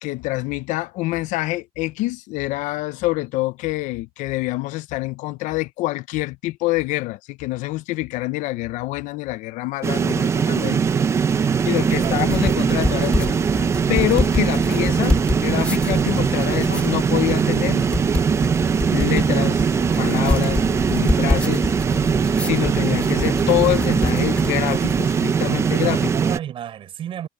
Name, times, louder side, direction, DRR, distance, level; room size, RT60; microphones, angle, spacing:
voice 1, 0.0-10.8 11.7-17.8 18.9-19.7 20.0-21.7 22.4-26.1, left 19 dB, 65° left, 0.6 m, -26 dB
sound 1, 9.8-26.4, right 6 dB, 20° right, 0.4 m, -21 dB
voice 2, 10.6-11.7 12.0-12.2 26.1-27.3, right 10 dB, 40° right, 5.7 m, -33 dB
sound 2, 11.7-25.2, left 2 dB, 10° left, 3.8 m, -27 dB
cardioid pair, 165°, 14 cm